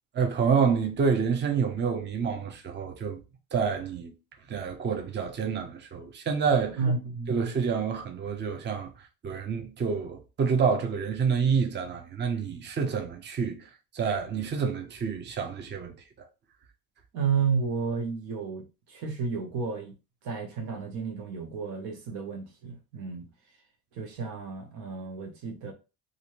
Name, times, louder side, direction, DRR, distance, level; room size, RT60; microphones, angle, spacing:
voice 1, 0.1-3.2 3.5-4.1 4.5-6.8 7.3-15.9, right 6 dB, 30° right, 0.6 m, -28 dB
voice 2, 6.8-7.5 17.1-19.9 20.2-23.3 23.9-25.7, right 5 dB, 85° right, 1.0 m, -32 dB
2.6 x 2.5 x 3.0 m
cardioid pair, 105°, 37 cm